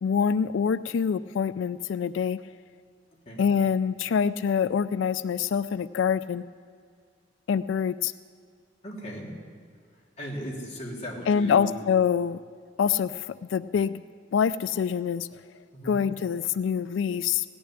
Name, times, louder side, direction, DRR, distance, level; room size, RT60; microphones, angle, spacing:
voice 1, 0.0-2.4 3.4-6.4 7.5-8.1 11.3-12.4 12.8-13.3 13.5-14.0 14.3-15.3 15.8-17.4, left 7 dB, 90° left, 15 dB, 0.3 m, -25 dB
voice 2, 8.8-9.3 10.2-11.7 15.7-16.0, equal, 35° left, -3 dB, 3.1 m, -37 dB
17.0 x 7.0 x 10.0 m, 2.1 s
head